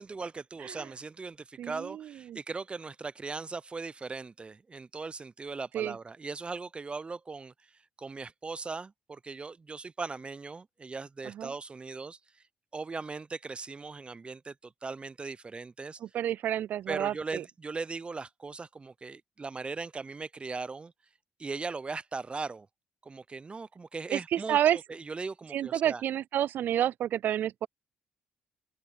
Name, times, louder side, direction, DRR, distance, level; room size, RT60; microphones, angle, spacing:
voice 1, 0.0-7.5 8.0-12.2 12.7-16.0 16.9-20.9 21.4-22.7 23.0-26.0, right 4 dB, 30° right, 0.7 m, -39 dB
voice 2, 1.6-2.4 5.7-6.0 11.2-11.5 16.0-17.4 24.1-24.8 25.5-27.7, right 11 dB, 65° right, 0.3 m, -30 dB
open air
hypercardioid pair, 55°, 4 cm